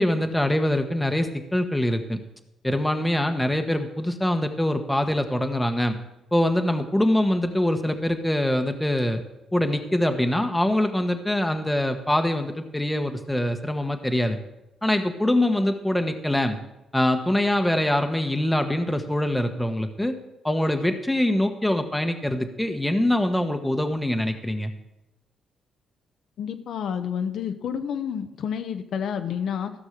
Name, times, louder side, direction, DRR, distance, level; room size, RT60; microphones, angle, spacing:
voice 1, 0.0-2.2 2.6-6.0 6.3-9.2 9.5-14.4 14.8-16.6 16.9-20.2 20.4-24.7, left 1 dB, 5° left, 7 dB, 1.1 m, -24 dB
voice 2, 26.4-29.7, left 8 dB, 70° left, 8 dB, 0.8 m, -29 dB
14.5 x 6.3 x 6.6 m, 0.93 s
cardioid pair, 90°, 0 cm